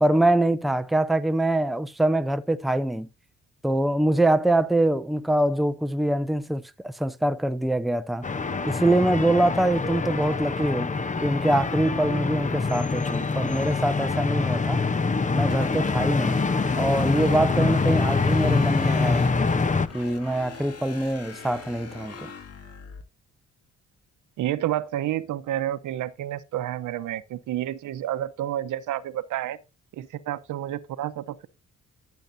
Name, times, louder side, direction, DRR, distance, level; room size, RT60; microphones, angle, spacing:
voice 1, 0.0-3.1 3.6-8.2 8.6-10.9 11.2-14.8 15.3-16.4 16.8-19.3 19.9-22.3, right 1 dB, ahead, 0.7 m, -24 dB
sound 1, 8.2-19.9, left 4 dB, 25° left, 0.9 m, -25 dB
sound 2, 15.5-23.0, left 5 dB, 50° left, 2.7 m, -42 dB
voice 2, 24.4-29.6 29.9-31.5, right 12 dB, 80° right, 1.0 m, -30 dB
13.0 x 8.1 x 2.7 m
cardioid pair, 90°, 30 cm